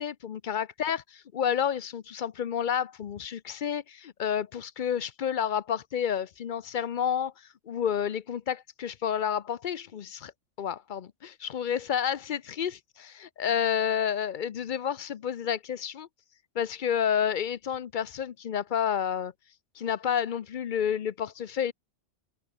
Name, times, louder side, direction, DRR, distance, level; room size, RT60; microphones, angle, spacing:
voice 1, 0.0-10.3 10.6-16.1 16.5-19.3 19.8-21.7, left 8 dB, 50° left, 0.7 m, -30 dB
omnidirectional pair, 1.3 m